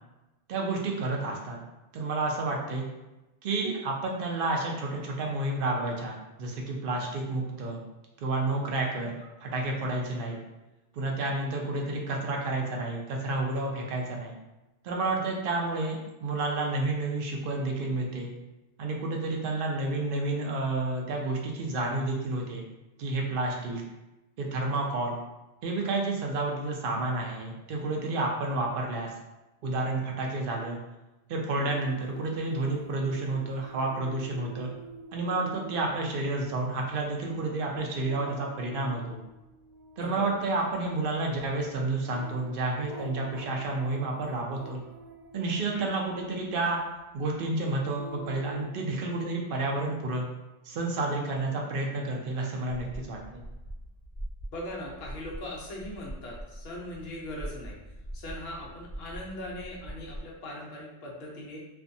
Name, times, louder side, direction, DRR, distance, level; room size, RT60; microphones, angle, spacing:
voice 1, 0.5-1.6 1.9-2.9 3.4-7.8 8.2-9.2 9.4-10.4 10.9-14.3 14.8-18.3 18.8-22.6 23.0-23.8 24.4-25.1 25.6-29.1 29.6-30.8 31.3-34.7 35.1-39.2 40.0-44.8 45.3-46.8 47.1-50.2 50.6-53.4, right 2 dB, 65° right, 0 dB, 0.5 m, -30 dB
sound 1, 31.6-46.7 47.3-48.7, right 2 dB, 90° right, 1.0 m, -48 dB
voice 2, 40.0-40.3 45.7-45.8 54.5-57.8 58.1-61.6, left 1 dB, 60° left, -3 dB, 0.8 m, -40 dB
sound 2, 52.7-60.2, right 1 dB, 40° right, 0.9 m, -42 dB
2.5 x 2.2 x 2.5 m, 1.0 s
omnidirectional pair, 1.3 m